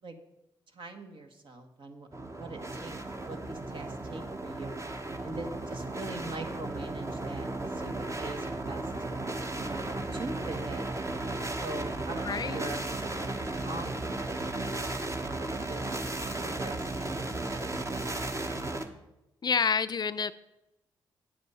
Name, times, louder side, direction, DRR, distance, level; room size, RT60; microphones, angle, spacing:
voice 1, 0.7-2.9 3.3-4.8 5.2-8.8 9.6-15.9 16.4-18.4, right 2 dB, 55° right, 5 dB, 1.5 m, -42 dB
sound 1, 2.1-18.8, right 2 dB, 30° right, 1.1 m, -35 dB
voice 2, 12.3-12.6 19.4-20.3, left 6 dB, 45° left, 14 dB, 0.4 m, -28 dB
8.5 x 7.7 x 5.6 m, 0.92 s
supercardioid pair, 50°, 10 cm